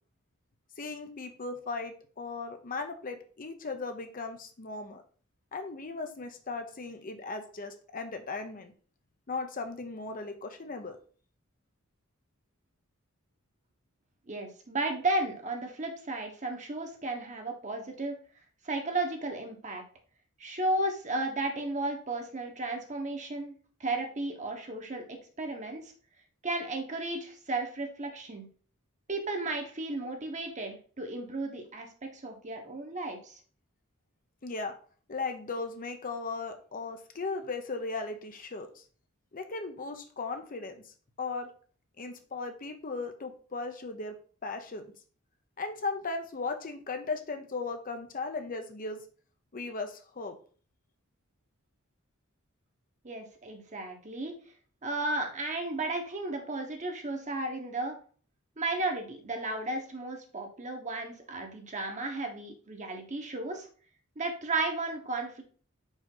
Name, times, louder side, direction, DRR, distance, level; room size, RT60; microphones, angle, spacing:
voice 1, 0.8-5.0 5.5-8.7 9.3-11.0 34.4-34.8 35.1-38.8 39.3-40.8 41.2-41.5 42.0-44.2 44.4-44.9 45.6-49.0 49.5-50.4, left 3 dB, 40° left, 7 dB, 0.7 m, -37 dB
voice 2, 14.3-18.2 18.6-19.8 20.4-25.9 26.4-28.5 29.1-33.4 53.0-54.3 54.8-58.0 58.6-63.7 64.2-65.4, right 2 dB, 35° right, 3 dB, 1.2 m, -34 dB
5.2 x 4.9 x 3.8 m, 0.42 s
head